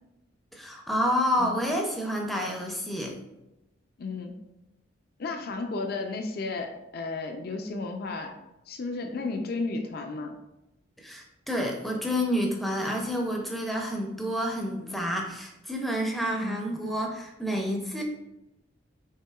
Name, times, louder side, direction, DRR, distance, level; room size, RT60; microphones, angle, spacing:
voice 1, 0.5-3.2 11.0-18.0, equal, ahead, 0 dB, 0.5 m, -29 dB
voice 2, 4.0-4.4 5.2-8.3 8.7-10.3 16.4-16.6, left 3 dB, 50° left, 4 dB, 0.4 m, -33 dB
5.6 x 3.7 x 2.3 m, 0.93 s
head